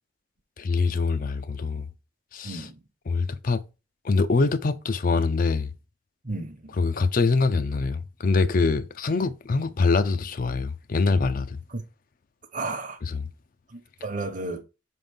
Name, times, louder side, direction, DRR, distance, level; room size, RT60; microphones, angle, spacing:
voice 1, 0.6-1.9 2.3-2.6 3.1-3.6 4.0-5.7 6.8-11.6 13.1-13.2, left 4 dB, 50° left, 0.4 m, -24 dB
voice 2, 2.4-2.8 6.2-6.8 11.7-11.8 12.5-13.0 13.7-14.6, right 2 dB, 45° right, 0.9 m, -33 dB
5.1 x 3.8 x 5.3 m
head